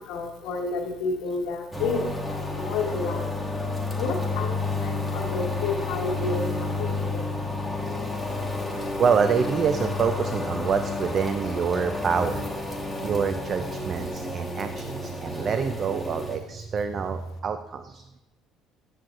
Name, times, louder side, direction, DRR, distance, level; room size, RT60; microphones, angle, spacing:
voice 1, 0.1-3.3 4.0-6.5 6.8-7.2, left 3 dB, 80° left, -2 dB, 1.2 m, -30 dB
sound 1, 1.7-16.4, left 2 dB, ahead, 1.3 m, -30 dB
voice 2, 8.7-18.2, right 6 dB, 45° right, 9 dB, 0.4 m, -27 dB
8.9 x 6.0 x 2.5 m, 1.0 s
supercardioid pair, 95°, 0 cm